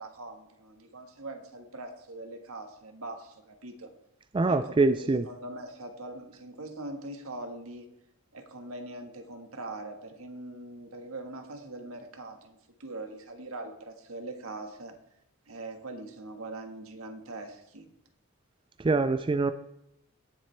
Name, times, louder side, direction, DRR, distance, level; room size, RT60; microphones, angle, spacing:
voice 1, 0.0-3.9 4.5-4.7 5.2-7.9 8.3-14.9 15.5-17.9, right 2 dB, 85° right, 5 dB, 1.5 m, -42 dB
voice 2, 4.3-5.2 18.8-19.5, right 3 dB, 25° right, 10 dB, 0.4 m, -24 dB
18.0 x 7.3 x 3.3 m, 0.78 s
head